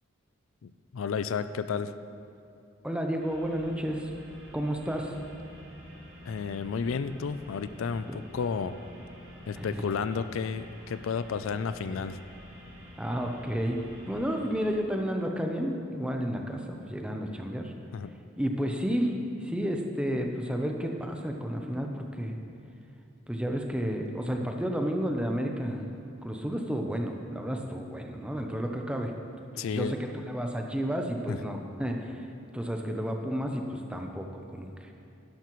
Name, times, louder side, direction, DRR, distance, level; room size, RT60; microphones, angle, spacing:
voice 1, 0.6-1.9 6.3-8.7 9.5-12.2 17.9-18.1 29.6-30.0 31.3-31.4, left 6 dB, 70° left, 12 dB, 0.4 m, -32 dB
voice 2, 2.8-4.1 4.5-5.2 8.1-8.2 9.6-9.8 13.0-17.7 18.3-22.4 23.3-25.9 26.2-29.1 29.5-32.3 32.5-34.9, equal, 5° right, 2 dB, 0.7 m, -31 dB
sound 1, 3.2-14.7, equal, 55° right, 2.7 m, -49 dB
11.5 x 11.5 x 3.1 m, 2.7 s
head